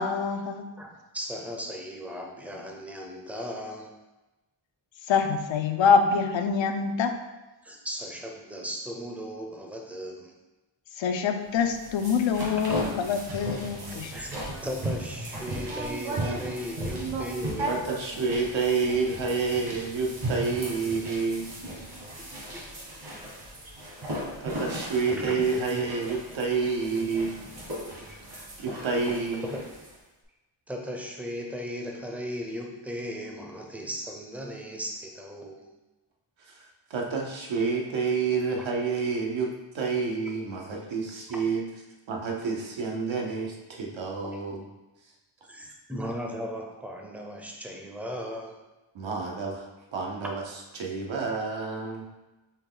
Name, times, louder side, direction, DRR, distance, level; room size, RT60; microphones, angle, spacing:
voice 1, 0.0-0.7 5.1-7.2 11.0-14.1 14.4-14.5, left 6 dB, 75° left, 7 dB, 0.5 m, -25 dB
voice 2, 0.8-3.9 7.6-10.3 12.8-12.9 14.1-17.8 22.5-22.8 25.1-25.5 25.7-25.9 27.0-27.1 27.4-28.4 29.4-29.6 30.7-35.7 40.2-40.3 41.3-41.4 44.2-44.4 45.5-48.6, equal, 5° right, 1 dB, 0.5 m, -37 dB
sound 1, 11.5-30.0, right 1 dB, 65° right, 1.4 m, -37 dB
voice 3, 15.7-16.7 17.0-17.3 17.6-21.5 24.4-27.3 28.6-29.5 36.9-41.7 42.1-44.6 48.9-49.7 49.9-50.4 50.7-52.0, right 4 dB, 80° right, 0 dB, 0.9 m, -29 dB
4.4 x 3.0 x 3.8 m, 1.1 s
wide cardioid pair, 130°, 45 cm